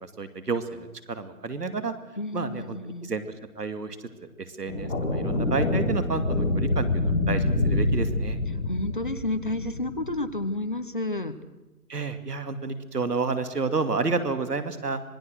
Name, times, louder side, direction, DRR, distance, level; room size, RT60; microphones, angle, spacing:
voice 1, 0.0-1.9 2.3-3.2 3.5-4.1 4.4-8.4 11.9-15.0, right 4 dB, 90° right, 10 dB, 2.6 m, -30 dB
voice 2, 2.2-3.1 8.7-11.3, left 2 dB, 35° left, 10 dB, 1.0 m, -30 dB
sound 1, 4.7-10.3, left 2 dB, 15° left, 7.8 m, -26 dB
26.0 x 19.5 x 6.5 m, 1.1 s
hypercardioid pair, 180°, 46 cm